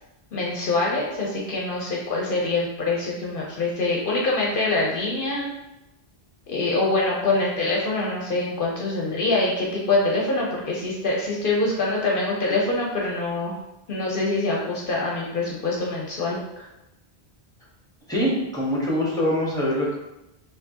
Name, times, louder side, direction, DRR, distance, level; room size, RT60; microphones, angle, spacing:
voice 1, 0.3-5.5 6.5-13.5 13.9-16.7, left 2 dB, 60° left, -3 dB, 0.8 m, -25 dB
voice 2, 18.1-19.9, equal, 5° left, -5 dB, 1.0 m, -23 dB
4.4 x 2.9 x 2.8 m, 0.94 s
omnidirectional pair, 1.0 m